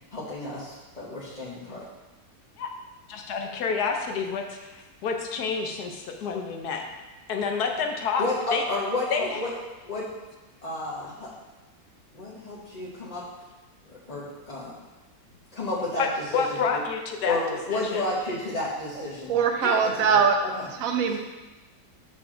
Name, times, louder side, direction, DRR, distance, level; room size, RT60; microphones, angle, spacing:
voice 1, 0.1-1.8 8.2-9.5 9.8-10.1 10.6-11.3 12.1-13.2 13.9-14.7 15.5-16.1 16.3-16.4 16.7-16.8 17.3-19.4 19.8-20.7, left 2 dB, 25° left, -9 dB, 1.0 m, -31 dB
voice 2, 3.1-6.8 7.3-8.2 8.5-8.6 9.1-9.4 16.0-17.4 17.7-18.0 19.6-19.8, left 5 dB, 70° left, 3 dB, 1.3 m, -29 dB
voice 3, 19.3-20.4 20.8-21.2, right 6 dB, 60° right, 4 dB, 1.1 m, -22 dB
6.9 x 5.9 x 3.7 m, 1.1 s
omnidirectional pair, 1.8 m